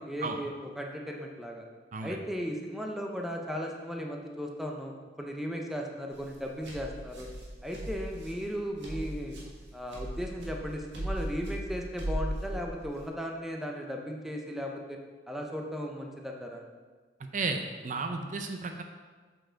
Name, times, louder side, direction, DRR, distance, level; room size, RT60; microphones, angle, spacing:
voice 1, 0.0-1.6 2.0-7.3 7.6-9.4 9.7-15.0 15.3-16.6, equal, ahead, 1 dB, 0.6 m, -36 dB
sound 1, 6.1-13.1, right 1 dB, 80° right, 1.8 m, -38 dB
voice 2, 17.3-18.8, right 3 dB, 45° right, 5 dB, 0.5 m, -33 dB
7.7 x 4.5 x 4.5 m, 1.4 s
head